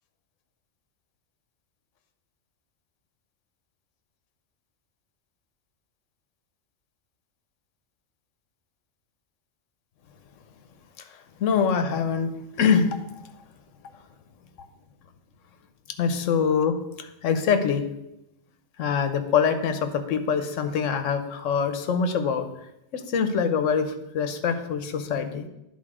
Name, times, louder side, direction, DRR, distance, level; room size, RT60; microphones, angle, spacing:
voice 1, 11.0-12.3 12.6-13.4 16.0-17.9 18.8-22.5 22.9-25.5, left 6 dB, 80° left, 8 dB, 1.1 m, -24 dB
11.0 x 3.9 x 4.8 m, 0.87 s
omnidirectional pair, 1.3 m